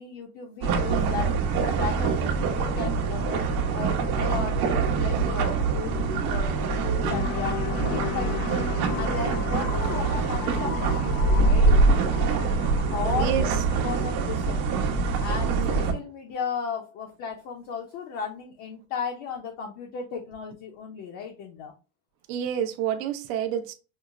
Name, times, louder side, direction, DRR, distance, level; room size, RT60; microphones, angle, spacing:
voice 1, 0.0-3.4 3.7-11.8 12.9-14.8 15.2-21.7, left 6 dB, 40° left, 0.6 m, -35 dB
sound 1, 0.6-15.9, right 4 dB, 90° right, 1.1 m, -24 dB
sound 2, 7.1-14.5, left 13 dB, 85° left, 0.5 m, -37 dB
voice 2, 22.3-23.7, right 9 dB, 70° right, 0.7 m, -28 dB
5.5 x 2.0 x 2.4 m
cardioid pair, 175°, 42 cm